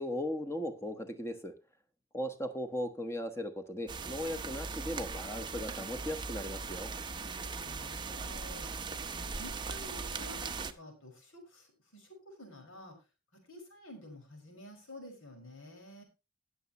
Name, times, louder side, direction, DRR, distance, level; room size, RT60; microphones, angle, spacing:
voice 1, 0.0-1.5 2.1-6.9, equal, 10° left, 8 dB, 1.2 m, -37 dB
sound 1, 3.9-10.7, right 4 dB, 20° right, 0.7 m, -39 dB
voice 2, 7.1-8.7 9.1-13.0 13.5-16.0, left 1 dB, 70° left, 3 dB, 5.3 m, -51 dB
19.5 x 7.1 x 3.0 m, 0.28 s
head